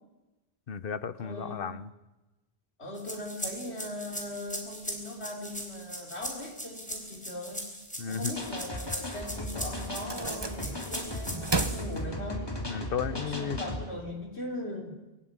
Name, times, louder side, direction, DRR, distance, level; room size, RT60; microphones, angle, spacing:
voice 1, 0.7-1.9 8.0-8.3 11.3-11.4 12.7-13.6, left 7 dB, 60° left, 15 dB, 1.1 m, -34 dB
voice 2, 1.2-1.6 2.8-7.6 8.1-11.4 11.7-12.5 13.1-14.9, left 1 dB, 80° left, 2 dB, 4.2 m, -39 dB
sound 1, 3.0-12.0, equal, 5° left, 4.1 m, -39 dB
sound 2, 8.4-13.8, left 1 dB, 20° left, 2.9 m, -37 dB
sound 3, 9.9-11.0 11.3-12.6, right 3 dB, 25° right, 1.1 m, -34 dB
23.0 x 16.5 x 9.8 m, 1.1 s
omnidirectional pair, 1.1 m